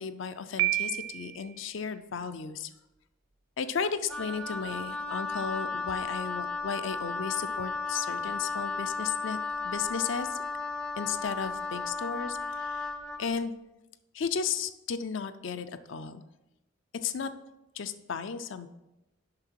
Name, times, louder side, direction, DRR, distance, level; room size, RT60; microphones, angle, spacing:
voice 1, 0.0-2.7 3.6-9.4 9.6-10.4 11.0-12.9 13.2-13.5 14.1-16.2 17.0-17.3 17.7-18.7, left 6 dB, 70° left, 12 dB, 0.5 m, -34 dB
Piano, 0.6-1.5, right 17 dB, 75° right, 0.7 m, -30 dB
Wind instrument woodwind instrument, 4.1-13.3, left 4 dB, 5° left, 0.4 m, -34 dB
7.6 x 5.7 x 4.6 m, 0.93 s
head